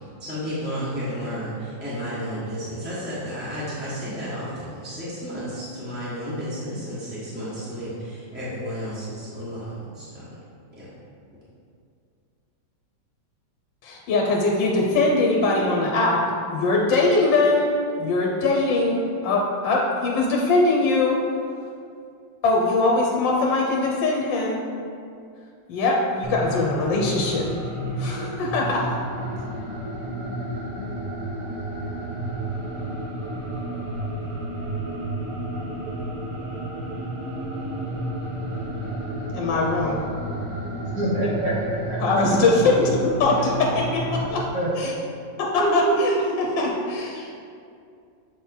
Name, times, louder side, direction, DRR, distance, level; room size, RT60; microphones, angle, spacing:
voice 1, 0.2-10.3 10.8-10.9, equal, 5° right, -11 dB, 1.3 m, -32 dB
voice 2, 13.8-16.2 16.5-17.7 18.0-21.2 22.4-24.6 25.7-27.5 28.0-29.0 39.3-40.1 42.0-44.0 44.3-44.4 44.7-44.9 45.5-47.3, left 2 dB, 80° left, -1 dB, 1.4 m, -22 dB
sound 1, 26.2-44.3, right 1 dB, 25° right, 0.7 m, -31 dB
voice 3, 41.0-41.5 41.9-42.2 44.5-44.9 45.6-46.6, right 2 dB, 80° right, -8 dB, 2.4 m, -25 dB
7.5 x 3.7 x 4.3 m, 2.4 s
omnidirectional pair, 2.0 m